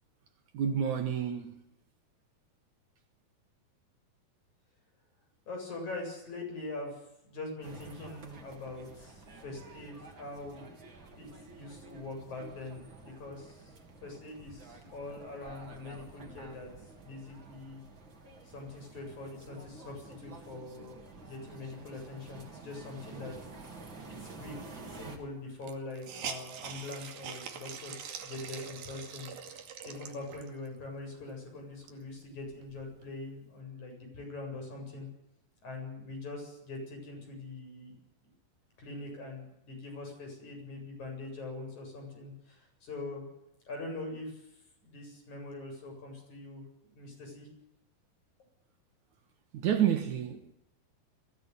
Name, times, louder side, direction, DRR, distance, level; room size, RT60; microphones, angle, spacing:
voice 1, 0.5-1.6 49.5-50.5, right 9 dB, 60° right, 2.7 m, -29 dB
voice 2, 5.5-10.7 11.2-13.7 14.0-16.7 17.0-17.8 18.5-23.3 24.2-29.3 29.8-35.1 35.6-38.0 38.8-43.2 43.7-44.5 44.8-46.6 46.9-47.5, left 2 dB, 50° left, 9.1 m, -43 dB
sound 1, 7.6-25.2, right 3 dB, 35° right, 3.8 m, -50 dB
Hiss, 24.8-24.9 25.1-25.2 25.6-30.7 31.2-31.3 31.7-33.1, right 7 dB, 80° right, 4.2 m, -44 dB
22.5 x 17.5 x 9.7 m
omnidirectional pair, 4.1 m